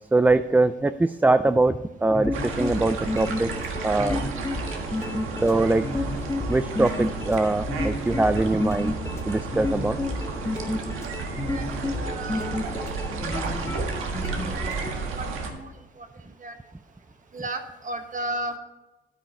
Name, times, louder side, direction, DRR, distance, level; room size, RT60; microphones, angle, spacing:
voice 1, 0.1-3.5 3.8-4.2 5.4-5.9 6.5-8.9 9.3-10.0, right 2 dB, 10° right, 11 dB, 0.3 m, -22 dB
sound 1, 2.0-14.9, left 2 dB, 15° left, 1.2 m, -31 dB
sound 2, 2.3-15.5, right 4 dB, 85° right, 1.6 m, -33 dB
voice 2, 11.5-13.0 14.0-14.1 14.5-15.7 16.0-16.1 16.4-16.5 17.3-18.6, right 2 dB, 40° right, 6 dB, 1.3 m, -35 dB
10.0 x 8.9 x 4.2 m, 1.0 s
cardioid pair, 100°, 21 cm